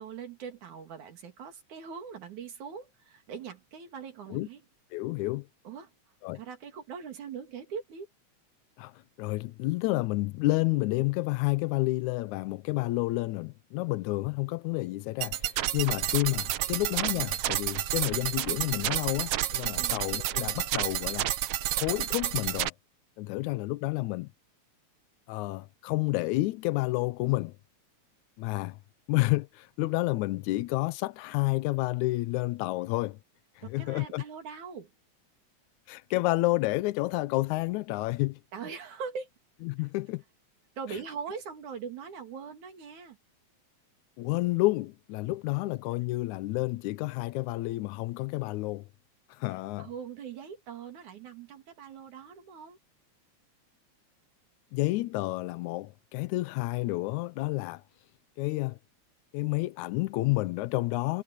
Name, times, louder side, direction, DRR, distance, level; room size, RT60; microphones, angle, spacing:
voice 1, 0.0-4.6 5.6-5.9 6.3-8.1 19.7-20.0 33.6-34.9 38.5-39.3 40.8-43.2 45.5-45.6 49.8-52.8, right 6 dB, 85° right, 4.0 m, -41 dB
voice 2, 4.9-5.5 6.2-6.4 8.8-8.9 9.2-21.3 21.7-22.7 23.2-24.3 25.3-27.5 28.4-28.8 29.1-33.2 33.6-34.2 35.9-38.4 39.6-40.2 44.2-48.9 49.3-49.9 54.7-57.8 58.4-58.8 59.3-61.2, left 20 dB, 85° left, 2.1 m, -30 dB
sound 1, 15.2-22.7, right 12 dB, 70° right, 1.6 m, -30 dB
omnidirectional pair, 3.3 m